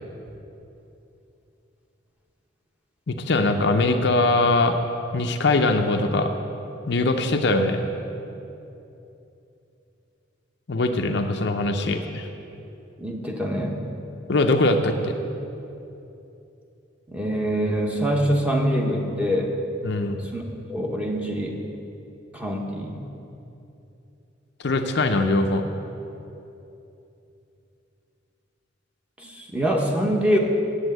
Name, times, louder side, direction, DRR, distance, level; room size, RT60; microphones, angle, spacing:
voice 1, 3.1-4.8 5.1-6.3 6.9-7.8 10.7-12.3 14.3-15.1 19.8-20.2 24.6-25.6, left 2 dB, 60° left, 5 dB, 0.6 m, -21 dB
voice 2, 13.0-13.8 17.1-19.6 20.2-20.4 20.7-21.6 22.3-23.0 29.2-30.4, equal, 5° right, 0 dB, 0.9 m, -24 dB
8.1 x 8.0 x 7.9 m, 2.9 s
head